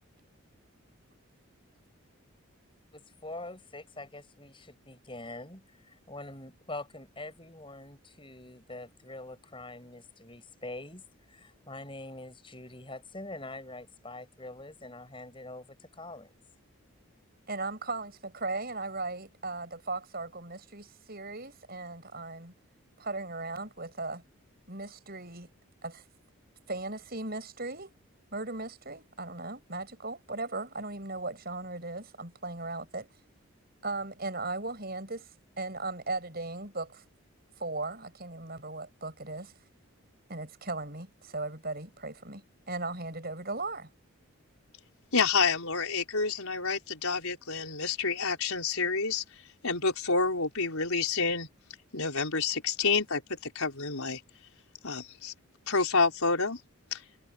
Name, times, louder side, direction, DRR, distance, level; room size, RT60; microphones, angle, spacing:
voice 1, 2.9-16.3, left 2 dB, 25° left, 6.1 m, -44 dB
voice 2, 17.5-22.5 23.0-24.2 24.7-25.5 25.8-26.0 26.7-27.9 28.3-33.1 33.8-35.3 35.6-37.0 37.6-39.5 40.3-43.9, right 2 dB, 45° right, 7.9 m, -37 dB
voice 3, 45.1-49.2 49.6-51.5 51.9-54.2 54.8-55.3 55.7-56.6 56.9-57.0, left 4 dB, 80° left, 4.6 m, -28 dB
head